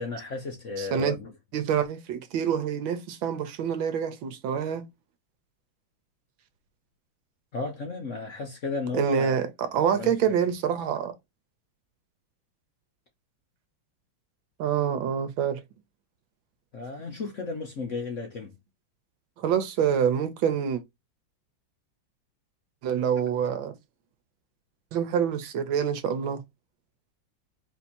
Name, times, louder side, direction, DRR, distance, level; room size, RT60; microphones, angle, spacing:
voice 1, 0.0-1.3 7.5-9.4 9.9-10.1 16.7-18.5, left 3 dB, 55° left, 0.9 m, -34 dB
voice 2, 0.8-1.2 1.5-4.8 8.9-11.1 14.6-15.6 19.4-20.8 22.8-23.7 24.9-26.4, right 8 dB, 75° right, 1.5 m, -26 dB
4.2 x 2.8 x 4.2 m
omnidirectional pair, 2.2 m